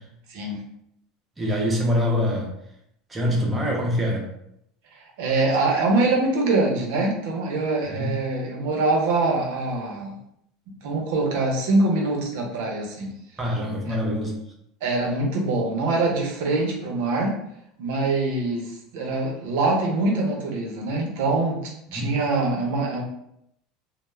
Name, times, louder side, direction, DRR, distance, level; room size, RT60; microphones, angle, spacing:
voice 1, 1.4-2.5 3.1-4.3 7.9-8.1 13.4-14.3 21.9-22.1, left 1 dB, 15° right, -1 dB, 0.6 m, -24 dB
voice 2, 4.9-10.1 10.8-13.1 13.9-14.0 14.8-17.3 17.8-23.0, right 2 dB, 75° right, 1 dB, 0.6 m, -24 dB
2.2 x 2.0 x 3.1 m, 0.75 s
supercardioid pair, 140°, 0 cm